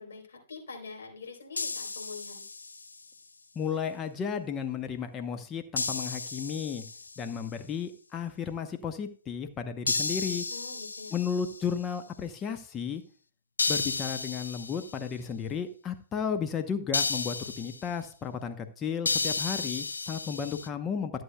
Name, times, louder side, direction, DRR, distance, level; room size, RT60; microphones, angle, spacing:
voice 1, 0.0-2.4 10.5-11.2, left 4 dB, 70° left, -1 dB, 3.7 m, -44 dB
sound 1, 1.6-3.0 5.8-7.3 9.9-11.7 13.6-15.0 16.9-17.9 19.0-20.7, left 4 dB, 85° left, 0.5 m, -33 dB
voice 2, 3.5-6.8 7.2-10.4 11.1-13.0 13.7-21.1, left 7 dB, 25° left, 7 dB, 0.9 m, -33 dB
14.0 x 7.9 x 2.3 m, 0.40 s
figure-of-eight pair, 110°, 0 cm